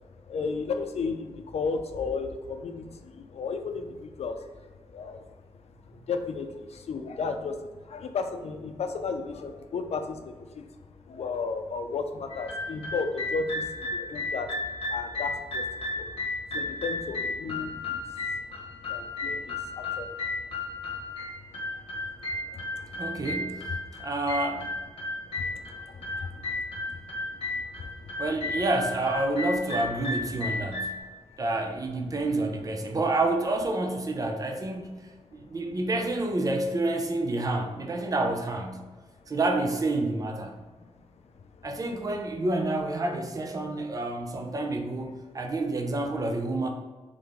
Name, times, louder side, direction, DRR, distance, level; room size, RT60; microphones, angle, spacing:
voice 1, 0.3-4.5 4.9-5.2 5.9-10.6 11.1-14.5 14.9-16.2 16.5-18.3 18.9-20.1 21.0-21.1 21.7-21.8 22.3-23.0 25.4-27.0 27.5-28.1, left 4 dB, 75° left, 6 dB, 0.5 m, -34 dB
sound 1, 12.3-31.0, left 2 dB, 60° left, 1.1 m, -34 dB
voice 2, 23.0-24.7 28.2-30.9 31.4-38.8 39.3-40.6 41.6-46.7, right 2 dB, 35° right, 3 dB, 0.5 m, -29 dB
3.8 x 3.3 x 3.5 m, 1.3 s
wide cardioid pair, 140°, 11 cm